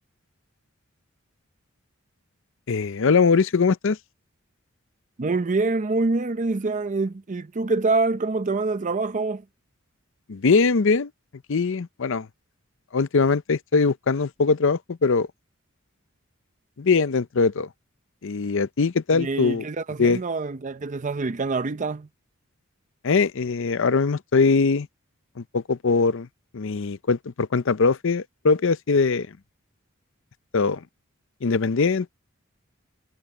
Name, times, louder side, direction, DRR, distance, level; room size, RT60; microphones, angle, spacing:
voice 1, 2.7-4.0 10.3-11.1 11.5-12.3 12.9-15.3 16.8-17.7 18.2-19.6 20.0-20.2 23.0-24.9 25.5-26.3 26.5-29.3 30.5-30.8 31.4-32.2, left 4 dB, 65° left, 0.6 m, -21 dB
voice 2, 5.2-9.4 19.1-22.1, right 3 dB, 35° right, 0.6 m, -25 dB
head